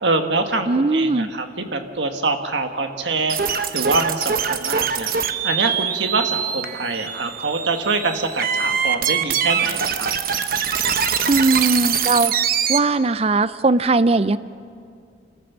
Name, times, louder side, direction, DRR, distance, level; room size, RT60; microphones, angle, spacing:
voice 1, 0.0-3.4 3.7-5.1 5.4-10.1, right 3 dB, 80° right, 5 dB, 1.6 m, -24 dB
voice 2, 0.7-1.3 11.3-12.3 12.7-14.4, right 3 dB, 35° right, 15 dB, 0.5 m, -19 dB
sound 1, 3.3-12.8, right 7 dB, 50° right, 0.9 m, -23 dB
29.0 x 14.0 x 7.3 m, 2.3 s
head